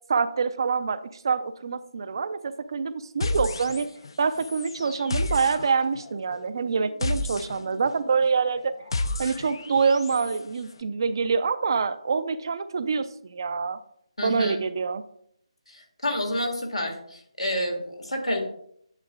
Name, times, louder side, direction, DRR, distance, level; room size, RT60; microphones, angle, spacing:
voice 1, 0.1-3.9 4.2-8.7 9.2-13.8 14.2-15.0, right 5 dB, 45° right, 13 dB, 0.4 m, -26 dB
sound 1, 3.2-4.1 4.4-10.4, left 2 dB, 50° left, 0.5 m, -32 dB
voice 2, 14.2-14.6 15.7-18.4, left 1 dB, 85° left, 2 dB, 2.1 m, -29 dB
8.8 x 6.8 x 2.4 m, 0.69 s
figure-of-eight pair, 150°, 3 cm